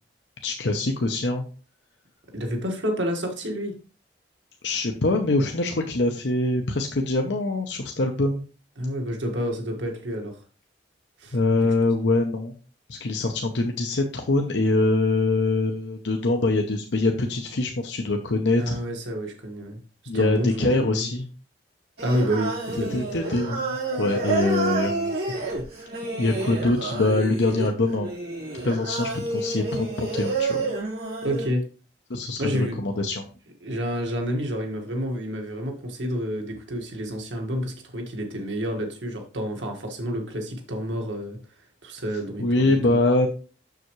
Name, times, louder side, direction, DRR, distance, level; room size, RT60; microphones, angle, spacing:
voice 1, 0.4-1.4 4.6-8.4 11.3-12.5 12.9-18.8 20.1-21.3 22.9-23.6 23.9-25.1 26.2-28.1 28.6-30.6 32.1-33.3 42.4-43.3, left 2 dB, 75° left, 3 dB, 0.8 m, -24 dB
voice 2, 2.3-3.8 8.8-10.4 11.2-11.4 18.5-19.8 20.1-21.1 22.0-23.0 25.3-25.4 31.2-31.7 32.4-32.8 33.6-41.4 41.8-43.0, equal, 90° right, 2 dB, 1.7 m, -29 dB
Singing, 22.0-31.5, right 3 dB, 55° right, 4.2 m, -29 dB
6.9 x 6.6 x 3.1 m, 0.37 s
head